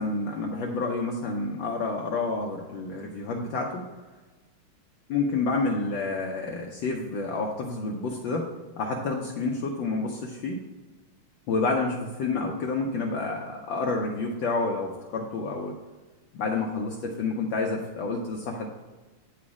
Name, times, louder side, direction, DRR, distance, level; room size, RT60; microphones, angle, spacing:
voice 1, 0.0-3.9 5.1-8.5 8.8-10.6 11.5-15.7 16.3-18.7, left 3 dB, 70° left, 0 dB, 1.5 m, -29 dB
9.5 x 4.2 x 4.8 m, 1.3 s
omnidirectional pair, 2.3 m